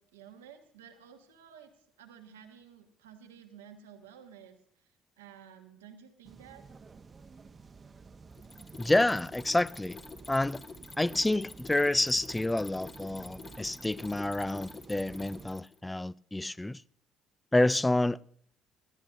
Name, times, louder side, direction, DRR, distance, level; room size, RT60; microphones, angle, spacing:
voice 1, 0.0-1.7 2.0-4.9 5.2-6.6, right 8 dB, 90° right, 1.4 m, -53 dB
sound 1, 6.2-15.5, right 4 dB, 35° right, 0.9 m, -51 dB
Mechanisms, 8.3-15.8, left 4 dB, 35° left, 1.8 m, -48 dB
voice 2, 8.8-10.0 10.3-10.6 11.0-16.8 17.5-18.2, left 1 dB, 15° left, 0.4 m, -28 dB
20.5 x 14.0 x 2.6 m
hypercardioid pair, 55°, 0 cm